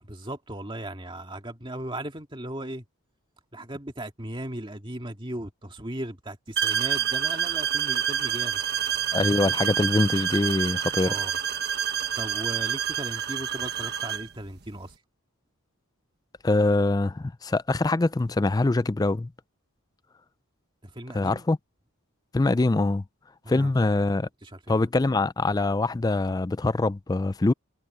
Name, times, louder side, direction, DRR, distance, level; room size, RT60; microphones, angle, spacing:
voice 1, 0.0-2.8 3.5-8.6 11.1-11.4 12.2-14.9 20.8-21.5 23.4-23.9 24.2-24.9, right 1 dB, 20° right, 2.0 m, -37 dB
sound 1, 6.6-14.3, right 8 dB, 45° right, 1.3 m, -28 dB
voice 2, 9.1-11.1 16.4-19.3 21.1-21.6 22.3-23.0 23.5-24.3 24.7-27.5, left 2 dB, 15° left, 0.3 m, -24 dB
head